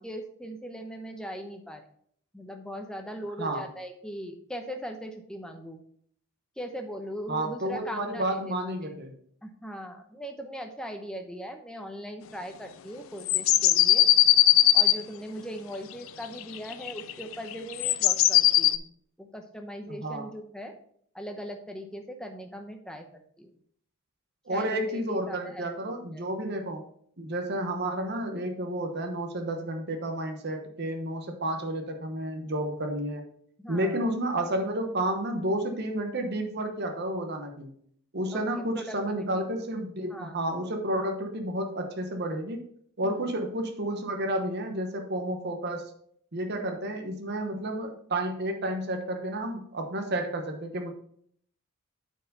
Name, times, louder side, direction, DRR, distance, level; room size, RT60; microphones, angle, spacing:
voice 1, 0.0-1.8 2.3-5.8 6.6-8.6 8.8-8.9 9.4-14.1 14.7-18.8 19.2-20.7 21.1-23.0 23.4-23.5 24.5-26.3 33.6-34.0 38.3-39.3 40.1-40.4 43.0-43.3 46.6-46.7, equal, 5° left, 4 dB, 0.8 m, -40 dB
voice 2, 3.4-3.7 7.3-9.2 19.9-20.3 24.5-26.8 27.2-33.2 33.7-37.7 38.1-42.6 43.0-45.8 46.3-50.9, right 1 dB, 50° right, 4 dB, 1.0 m, -31 dB
sound 1, 13.3-15.0 16.4-18.8, left 14 dB, 65° left, 0.4 m, -20 dB
8.8 x 4.7 x 4.0 m, 0.63 s
head